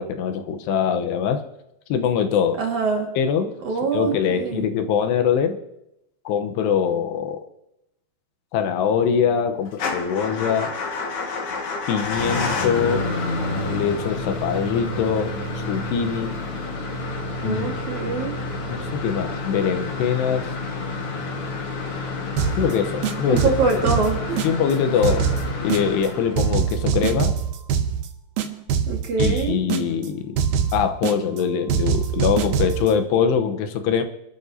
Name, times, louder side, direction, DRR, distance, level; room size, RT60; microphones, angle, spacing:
voice 1, 0.0-1.4 1.9-2.6 3.2-3.6 3.9-5.6 6.3-7.4 8.5-10.7 11.9-13.1 13.7-16.4 17.4-17.7 18.7-20.5 22.6-23.4 23.8-23.9 24.4-25.3 25.6-27.4 29.2-30.4 30.7-34.0, left 7 dB, 80° left, 7 dB, 2.9 m, -23 dB
voice 2, 2.6-3.1 3.6-4.7 17.4-18.4 23.3-24.4 28.9-29.6, right 4 dB, 55° right, 0 dB, 2.6 m, -24 dB
Motor vehicle (road) / Engine starting / Idling, 9.7-26.7, left 3 dB, 60° left, 1.4 m, -29 dB
sound 1, 22.4-22.7 23.0-24.7 25.0-26.1 26.4-28.1 28.4-30.1 30.4-31.4 31.7-32.9, right 7 dB, 70° right, 2.3 m, -23 dB
28.0 x 12.5 x 2.7 m, 0.84 s
omnidirectional pair, 5.1 m